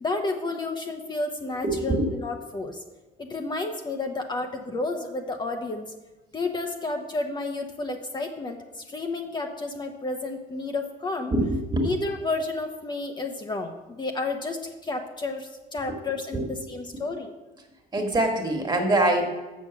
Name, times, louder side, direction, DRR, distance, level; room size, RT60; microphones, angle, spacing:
voice 1, 0.0-2.8 3.2-5.9 6.3-11.3 11.8-17.3, left 3 dB, 25° left, 3 dB, 0.8 m, -31 dB
voice 2, 1.6-2.1 11.3-11.9 16.3-16.5 17.9-19.2, right 1 dB, 25° right, 3 dB, 1.7 m, -24 dB
7.0 x 6.4 x 7.1 m, 1.1 s
cardioid pair, 110°, 17 cm